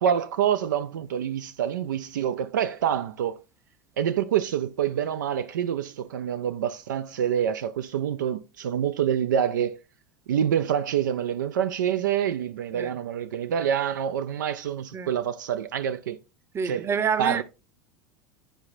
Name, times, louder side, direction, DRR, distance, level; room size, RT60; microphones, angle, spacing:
voice 1, 0.0-3.4 4.0-9.8 10.3-16.2 16.6-16.9 17.2-17.4, right 9 dB, 70° right, 0.4 m, -26 dB
voice 2, 16.5-17.4, right 6 dB, 25° right, 0.8 m, -27 dB
10.0 x 4.8 x 2.6 m
figure-of-eight pair, 80°, 10 cm